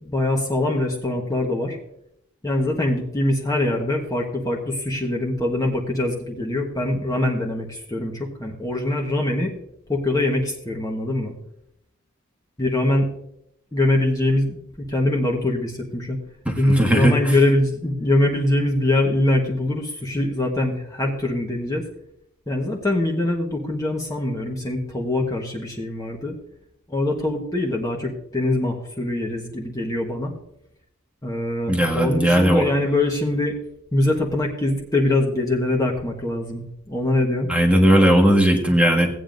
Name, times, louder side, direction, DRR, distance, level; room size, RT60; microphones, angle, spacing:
voice 1, 0.0-1.8 2.4-9.5 9.9-11.3 12.6-13.1 13.7-16.2 16.5-21.9 22.5-26.3 26.9-30.3 31.2-33.6 33.9-37.5, left 1 dB, 15° left, -1 dB, 1.2 m, -23 dB
voice 2, 16.4-17.3 31.7-32.7 37.5-39.1, equal, 5° right, 1 dB, 1.4 m, -17 dB
17.5 x 8.9 x 2.6 m, 0.76 s
head